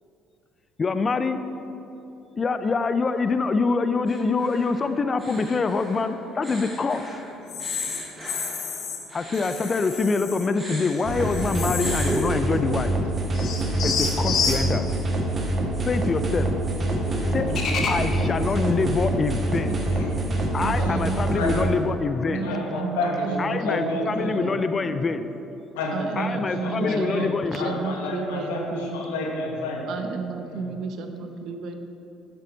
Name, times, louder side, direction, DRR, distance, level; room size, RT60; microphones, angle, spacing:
voice 1, 0.8-1.4 2.4-7.2 9.1-12.9 13.8-14.8 15.8-16.5 17.3-17.5 17.9-19.8 20.5-22.5 23.4-25.2 26.2-27.7, left 4 dB, 35° left, 10 dB, 0.4 m, -25 dB
sound 1, 4.1-10.2 10.5-12.2, right 1 dB, 25° right, 1.6 m, -39 dB
sound 2, 7.5-9.0 9.3-10.5 10.8-12.4 12.7-12.8 13.3-20.7, left 4 dB, 60° left, 1.1 m, -32 dB
sound 3, 11.0-21.6, right 2 dB, 40° right, 1.4 m, -26 dB
voice 2, 19.9-21.7 22.4-24.5 25.7-29.9 30.4-30.7, left 2 dB, 90° left, 0 dB, 1.2 m, -30 dB
voice 3, 20.6-21.8 22.3-25.0 25.9-29.0 29.9-31.7, right 4 dB, 65° right, 6 dB, 0.7 m, -32 dB
7.5 x 6.9 x 3.9 m, 2.9 s
supercardioid pair, 65°, 0 cm